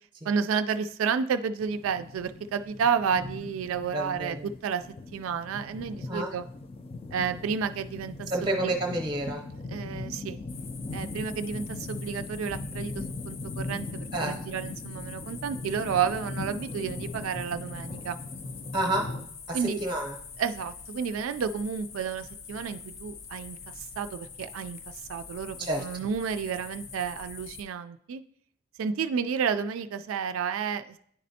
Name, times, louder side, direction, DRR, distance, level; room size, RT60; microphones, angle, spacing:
voice 1, 0.2-4.9 5.1-6.4 7.1-8.7 9.7-10.4 10.9-18.2 19.5-19.8 20.4-24.8 25.1-28.2 28.8-31.0, right 6 dB, 90° right, 10 dB, 0.3 m, -31 dB
sound 1, 1.6-19.3, left 2 dB, 30° left, 0.3 m, -39 dB
voice 2, 3.9-4.5 6.1-6.3 8.3-9.4 14.1-14.4 18.7-19.1 19.5-20.1 25.6-25.8, right 1 dB, 25° right, 2 dB, 0.7 m, -29 dB
sound 2, 10.5-27.6, left 5 dB, 80° left, 0.6 m, -45 dB
9.8 x 4.2 x 2.7 m, 0.66 s
head